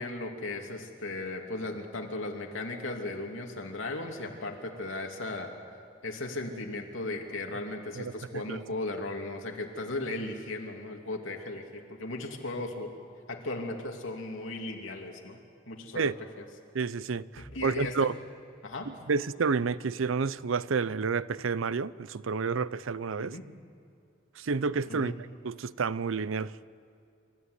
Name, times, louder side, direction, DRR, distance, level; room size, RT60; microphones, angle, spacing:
voice 1, 0.0-5.5 6.0-12.9 13.3-15.4 15.7-16.1 16.4-16.5 17.4-17.9 18.6-18.9 23.2-23.4 24.9-25.1, left 2 dB, 80° left, 2 dB, 2.8 m, -36 dB
voice 2, 16.7-18.1 19.1-23.4 24.4-25.1 25.4-26.6, right 5 dB, 90° right, 18 dB, 0.6 m, -30 dB
27.5 x 14.5 x 9.6 m, 2.6 s
head